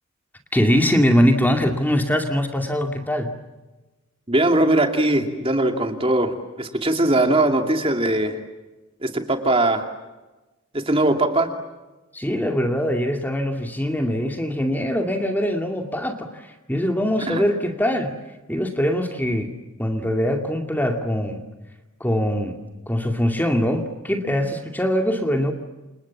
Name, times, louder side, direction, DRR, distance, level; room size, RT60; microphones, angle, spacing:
voice 1, 0.5-3.3 12.1-18.2 18.5-19.5 19.8-21.4 22.0-22.6 22.9-25.5, equal, 10° left, 4 dB, 2.3 m, -22 dB
voice 2, 4.3-8.4 9.0-9.9 10.7-11.5 17.3-17.4, right 1 dB, 25° right, 5 dB, 2.6 m, -20 dB
29.5 x 28.0 x 7.3 m, 1.1 s
head